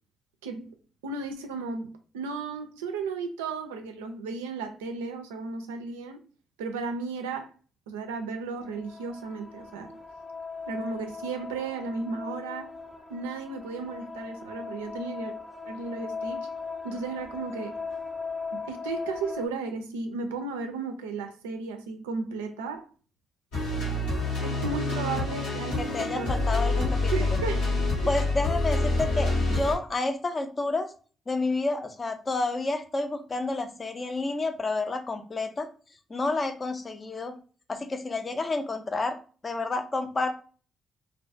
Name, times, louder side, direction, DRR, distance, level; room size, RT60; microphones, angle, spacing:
voice 1, 1.0-6.2 6.6-7.5 7.9-9.9 10.7-12.7 13.1-15.3 15.7-16.5 16.8-17.7 18.5-22.9 24.4-26.3 26.7-26.8 27.1-27.7 28.0-28.2, right 4 dB, 90° right, 6 dB, 0.3 m, -34 dB
sound 1, 8.6-19.5, left 4 dB, 10° right, 0.7 m, -39 dB
sound 2, 23.5-29.7, left 2 dB, 85° left, 1.0 m, -27 dB
voice 2, 25.8-27.4 28.1-30.9 31.3-35.7 36.1-37.4 37.7-39.2 39.4-40.3, left 3 dB, 35° left, 7 dB, 0.5 m, -30 dB
2.3 x 2.2 x 2.5 m, 0.38 s
hypercardioid pair, 45°, 0 cm